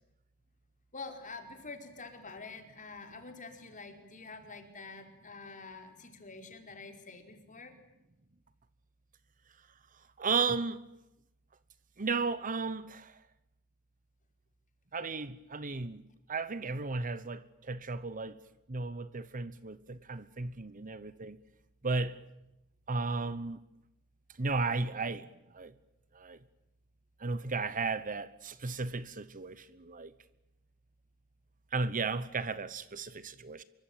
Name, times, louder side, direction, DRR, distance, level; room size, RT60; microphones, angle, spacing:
voice 1, 0.9-7.7, left 3 dB, 35° left, 4.6 m, -47 dB
voice 2, 10.2-10.8 12.0-13.2 14.9-16.0 16.3-18.4 18.7-21.4 21.8-22.2 22.9-23.6 24.4-25.3 25.5-25.7 26.1-26.4 27.2-30.1 31.7-33.6, right 4 dB, 35° right, 1.0 m, -34 dB
26.0 x 23.5 x 9.3 m
head